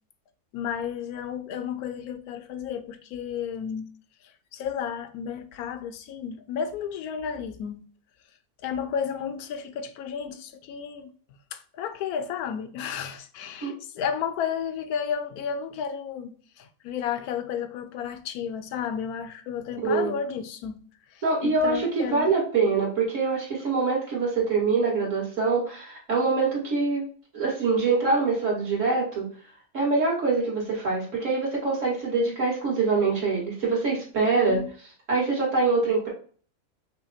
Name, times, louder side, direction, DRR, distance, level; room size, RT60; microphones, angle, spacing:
voice 1, 0.5-3.9 4.5-7.8 8.6-11.1 11.5-20.8 21.1-22.3 34.5-34.7, left 7 dB, 80° left, 1.1 m, -32 dB
voice 2, 19.8-20.1 21.2-27.1 27.3-29.3 29.7-34.6 35.1-36.1, right 4 dB, 55° right, 2.1 m, -24 dB
5.6 x 2.2 x 4.1 m
omnidirectional pair, 1.6 m